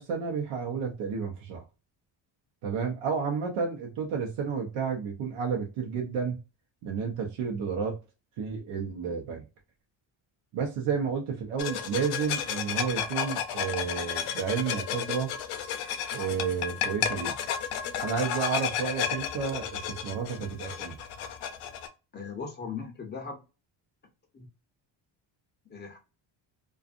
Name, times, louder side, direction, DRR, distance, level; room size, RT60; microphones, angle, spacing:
voice 1, 0.0-1.6 2.6-6.4 6.8-8.0 8.4-9.4 10.5-15.3 16.1-17.4 18.0-21.0, right 6 dB, 85° right, 0.8 m, -31 dB
sound 1, 11.6-21.9, left 8 dB, 85° left, 0.6 m, -32 dB
voice 2, 22.1-23.4 24.3-24.5 25.7-26.0, left 5 dB, 25° left, 0.4 m, -38 dB
2.5 x 2.4 x 2.4 m
cardioid pair, 170°, 49 cm